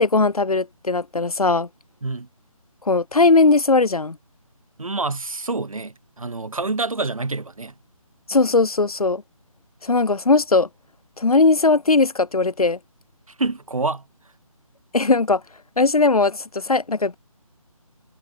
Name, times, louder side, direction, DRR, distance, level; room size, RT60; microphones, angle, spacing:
voice 1, 0.0-1.7 2.9-4.2 8.3-9.2 9.8-10.7 11.2-12.8 14.9-15.4 15.8-17.1, left 3 dB, 85° left, 0.7 m, -18 dB
voice 2, 4.8-7.7 13.4-14.0, right 3 dB, 70° right, 1.1 m, -27 dB
figure-of-eight pair, 155°, 18 cm